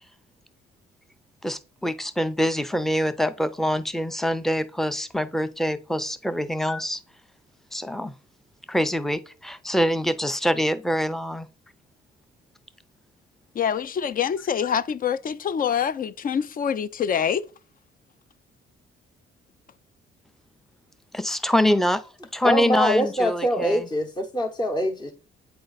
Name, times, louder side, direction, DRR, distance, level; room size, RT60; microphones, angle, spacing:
voice 1, 1.4-7.0 7.7-8.1 8.7-11.5 21.1-22.0 22.3-23.9, equal, ahead, 0.6 m, -25 dB
voice 2, 13.5-17.5, left 8 dB, 45° left, 0.5 m, -25 dB
voice 3, 22.4-25.1, equal, 25° left, 1.0 m, -24 dB
8.7 x 3.8 x 4.0 m
cardioid pair, 90°, 20 cm